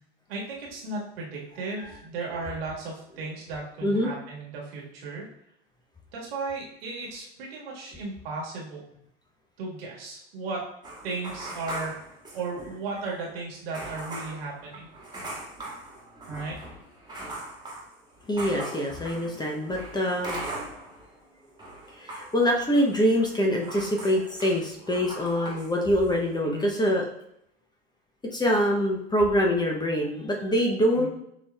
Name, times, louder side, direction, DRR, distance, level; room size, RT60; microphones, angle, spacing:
voice 1, 0.3-5.3 6.1-8.8 9.6-10.7 11.0-14.9 16.3-16.6 26.4-26.7 30.9-31.1, right 3 dB, 65° right, -3 dB, 1.7 m, -35 dB
sound 1, 10.8-12.9 13.2-13.3 13.7-21.1 21.4-25.7 26.0-26.3, right 2 dB, 15° right, 1.6 m, -40 dB
voice 2, 18.3-20.5 21.9-27.0 28.3-31.1, equal, 15° left, 0 dB, 0.7 m, -25 dB
7.1 x 3.0 x 2.3 m, 0.75 s
figure-of-eight pair, 80°, 32 cm